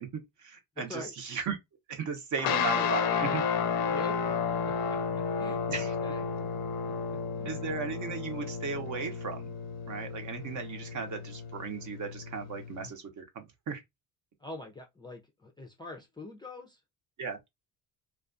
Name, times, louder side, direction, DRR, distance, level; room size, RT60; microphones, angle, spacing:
voice 1, 0.0-1.6 1.9-3.4 5.7-5.9 7.4-9.5 9.9-13.8 17.2-17.4, right 5 dB, 50° right, 0.8 m, -36 dB
voice 2, 0.8-1.1 2.8-2.9 3.9-4.3 4.7-5.0 5.4-6.5 6.8-7.6 14.4-16.8, left 2 dB, 10° left, 0.4 m, -44 dB
sound 1, 2.4-12.9, left 6 dB, 60° left, 0.5 m, -32 dB
2.4 x 2.3 x 2.5 m
cardioid pair, 105°, 40 cm